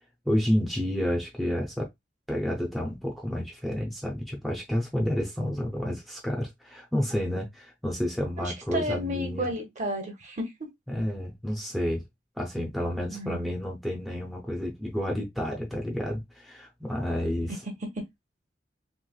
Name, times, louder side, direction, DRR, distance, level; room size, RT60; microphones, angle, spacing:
voice 1, 0.3-1.9 2.3-9.5 10.9-12.0 12.4-17.5, equal, ahead, 0.5 m, -30 dB
voice 2, 8.4-10.7 13.1-13.4 17.7-18.1, equal, 40° right, 0.8 m, -32 dB
3.1 x 3.0 x 2.3 m
head